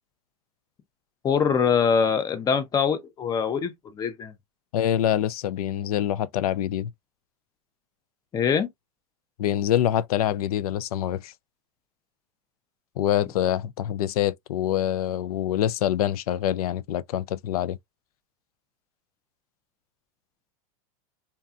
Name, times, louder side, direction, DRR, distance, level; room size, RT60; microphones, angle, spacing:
voice 1, 1.2-4.3 8.3-8.7, left 6 dB, 20° left, 0.5 m, -23 dB
voice 2, 4.7-6.9 9.4-11.3 13.0-17.8, left 11 dB, 80° left, 0.4 m, -25 dB
2.7 x 2.2 x 2.5 m
supercardioid pair, 125°, 19 cm